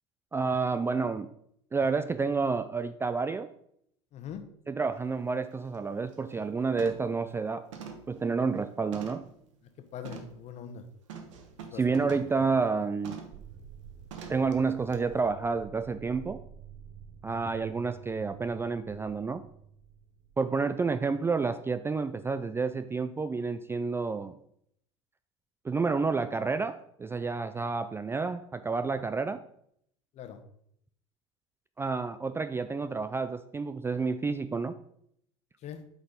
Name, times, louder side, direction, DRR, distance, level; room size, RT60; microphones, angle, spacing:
voice 1, 0.3-1.3 1.7-3.5 4.7-7.6 8.1-9.2 11.7-13.2 14.3-16.4 17.2-19.4 20.4-24.4 25.6-29.4 31.8-34.7, right 4 dB, 15° right, 11 dB, 0.4 m, -29 dB
voice 2, 4.1-4.4 9.9-10.8 11.6-12.4 30.1-30.4 35.6-35.8, left 8 dB, 45° left, 8 dB, 1.2 m, -42 dB
sound 1, 5.0-5.1 5.5-5.8 6.1-6.5 6.8-7.2 7.7-9.4 10.0-10.4 11.1-12.4 13.0-13.4 14.1-14.5 14.9-15.0, right 6 dB, 75° right, 1.2 m, -45 dB
sound 2, 13.3-20.7, right 8 dB, 55° right, 0.8 m, -49 dB
7.9 x 4.3 x 5.3 m, 0.71 s
hypercardioid pair, 80°, 16 cm